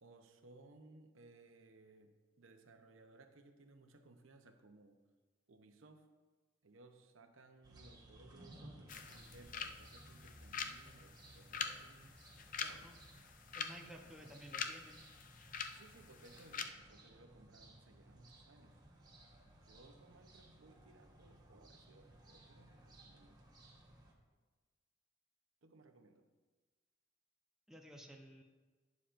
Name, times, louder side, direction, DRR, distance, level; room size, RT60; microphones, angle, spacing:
voice 1, 0.0-5.0 5.5-6.1 6.6-12.2 12.6-12.9 14.0-14.3 15.7-18.8 19.5-23.4 25.6-26.2, right 2 dB, 80° right, 6 dB, 0.8 m, -62 dB
sound 1, 7.6-24.1, right 1 dB, 20° right, 1.2 m, -60 dB
sound 2, 8.9-16.6, left 6 dB, 40° left, 0.5 m, -46 dB
voice 2, 13.5-15.0 27.7-28.4, equal, 5° right, 0 dB, 0.8 m, -54 dB
11.5 x 9.3 x 2.6 m, 1.3 s
head